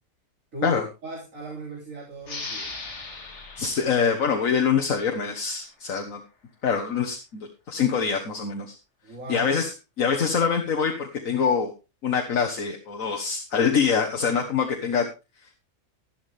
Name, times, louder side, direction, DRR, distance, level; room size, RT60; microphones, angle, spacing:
voice 1, 0.5-2.7 9.0-9.6, right 2 dB, 75° right, -3 dB, 3.6 m, -37 dB
sound 1, 2.2-5.5, left 3 dB, 60° left, 2.3 m, -39 dB
voice 2, 3.6-6.2 6.6-8.8 9.3-9.7 10.0-11.7 12.0-15.1, left 6 dB, 90° left, 2 dB, 1.8 m, -24 dB
12.5 x 12.0 x 3.4 m, 0.29 s
omnidirectional pair, 1.4 m